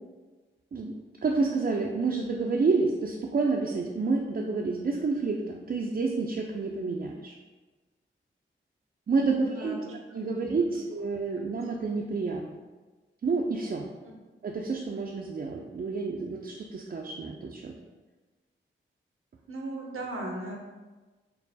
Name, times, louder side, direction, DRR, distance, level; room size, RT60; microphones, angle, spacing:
voice 1, 1.2-7.3 9.1-9.8 10.1-12.4 13.2-13.9 14.4-17.7, right 4 dB, 45° right, 0 dB, 0.4 m, -29 dB
voice 2, 9.4-10.0 10.4-10.5 14.0-14.1 19.5-20.6, right 2 dB, 85° right, 0 dB, 0.7 m, -37 dB
4.5 x 2.0 x 4.0 m, 1.3 s
cardioid pair, 40°, 21 cm